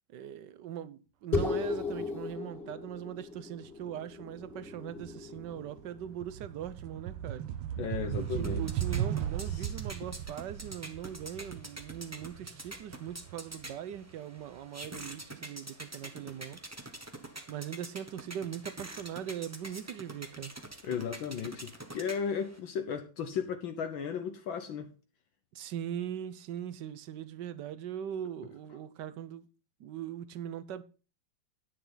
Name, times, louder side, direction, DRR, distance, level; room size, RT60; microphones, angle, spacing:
voice 1, 0.1-7.5 8.1-16.6 17.5-20.5 25.5-29.4 29.8-30.8, right 10 dB, 65° right, 1.2 m, -40 dB
sound 1, 1.3-6.1, left 4 dB, 25° left, 3.2 m, -36 dB
sound 2, 4.5-4.7 5.1-14.0, right 10 dB, 90° right, 1.7 m, -37 dB
voice 2, 7.8-8.6 9.5-9.7 20.8-24.9, left 7 dB, 65° left, 1.7 m, -35 dB
sound 3, 8.1-22.6, right 1 dB, 10° right, 0.7 m, -47 dB
10.0 x 9.8 x 3.9 m
omnidirectional pair, 2.4 m